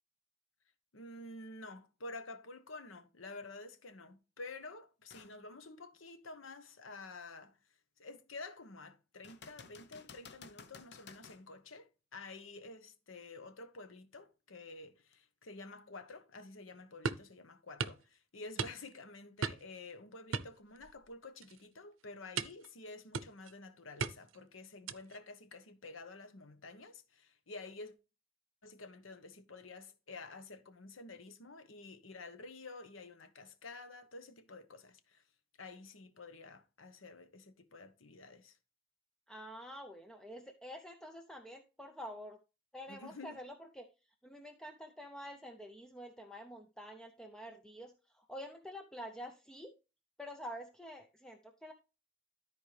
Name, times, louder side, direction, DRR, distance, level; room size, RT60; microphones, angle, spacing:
voice 1, 0.9-7.6 8.0-27.9 28.6-35.2 35.6-38.6 42.9-43.4, left 3 dB, 85° left, 1.2 m, -50 dB
sound 1, 5.1-5.4 5.9-6.0 9.2-11.4 15.1-15.2, left 5 dB, 60° left, 0.9 m, -54 dB
sound 2, 17.0-17.3 17.8-18.0 18.6-19.0 19.4-19.8 20.3-21.1 21.4-21.7 22.4-22.7 23.1-23.5 24.0-24.4 24.9-25.2, right 5 dB, 90° right, 0.6 m, -38 dB
voice 2, 39.3-42.4 42.7-49.7 50.2-51.7, equal, 5° left, 0.7 m, -48 dB
13.0 x 4.5 x 3.3 m
head